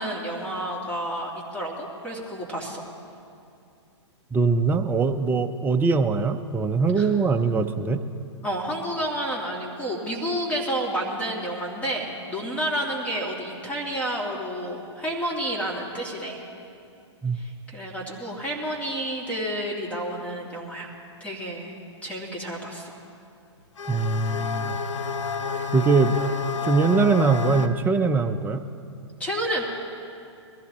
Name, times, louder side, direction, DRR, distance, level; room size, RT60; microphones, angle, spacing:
voice 1, 0.0-2.8 7.0-7.1 8.4-16.4 17.3-20.9 21.2-23.0 29.2-29.6, right 1 dB, 10° left, -2 dB, 2.4 m, -30 dB
voice 2, 4.3-8.0 17.2-17.4 23.9-24.8 25.7-26.2 26.6-28.6, right 4 dB, 10° right, 7 dB, 0.6 m, -22 dB
sound 1, 23.8-27.7, left 5 dB, 80° left, 0.9 m, -30 dB
21.5 x 14.5 x 4.3 m, 2.5 s
hypercardioid pair, 130°, 15 cm